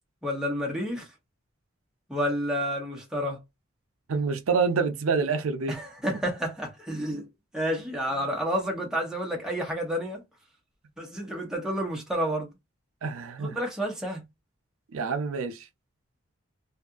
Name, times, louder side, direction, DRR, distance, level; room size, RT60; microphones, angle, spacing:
voice 1, 0.2-1.1 2.1-3.4 5.7-7.3 7.5-10.2 11.0-12.5 13.4-14.2, equal, 5° right, 0.7 m, -30 dB
voice 2, 4.1-5.8 8.1-8.2 13.0-13.6 14.9-15.7, right 5 dB, 90° right, 0.5 m, -27 dB
2.7 x 2.4 x 2.3 m
head